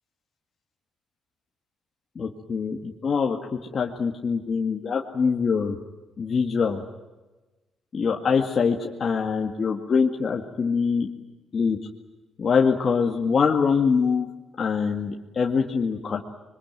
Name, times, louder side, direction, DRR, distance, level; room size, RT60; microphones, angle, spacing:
voice 1, 2.2-3.4 3.7-5.8 6.2-6.8 7.9-11.1 11.5-11.8 12.4-14.3 14.6-16.2, left 5 dB, 45° left, 1 dB, 2.0 m, -24 dB
25.5 x 23.0 x 9.2 m, 1.1 s
cardioid pair, 90°, 0 cm